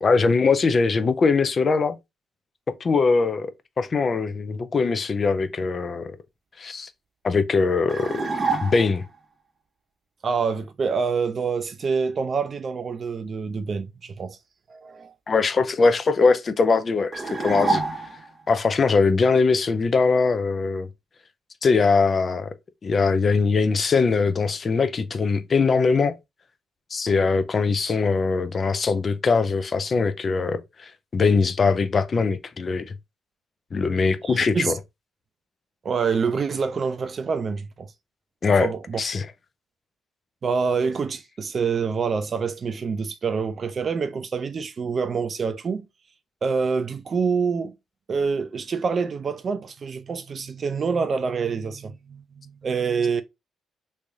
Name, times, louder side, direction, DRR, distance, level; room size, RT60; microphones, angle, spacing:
voice 1, 0.0-2.0 2.8-3.5 3.8-6.2 6.6-6.9 7.2-8.2 8.6-9.0 15.3-17.8 18.5-20.9 21.6-22.5 22.8-26.1 26.9-32.9 33.7-34.8 38.4-38.7 39.0-39.3, left 4 dB, 40° left, 0.5 m, -21 dB
sound 1, 7.9-9.1 17.1-18.4, right 3 dB, 30° right, 0.9 m, -27 dB
voice 2, 10.2-14.4 14.7-15.1 34.2-34.7 35.8-37.9 38.5-39.0 40.4-45.8 46.4-47.7 48.1-53.2, right 5 dB, 45° right, 0.5 m, -26 dB
3.2 x 2.7 x 3.5 m
cardioid pair, 90°, 0 cm